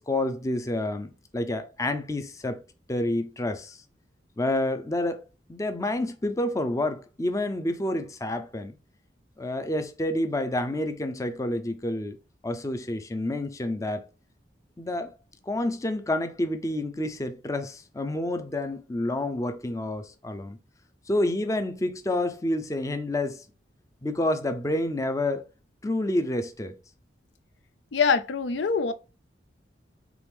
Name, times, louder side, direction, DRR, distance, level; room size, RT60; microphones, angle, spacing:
voice 1, 0.0-2.6 2.9-3.8 4.4-5.2 5.5-8.7 9.4-12.2 12.4-14.1 14.8-15.1 15.4-20.6 21.1-23.4 24.0-25.4 25.8-26.7, left 1 dB, 20° left, 0.5 m, -29 dB
voice 2, 27.9-28.9, left 5 dB, 90° left, 0.5 m, -24 dB
4.8 x 2.9 x 3.4 m
head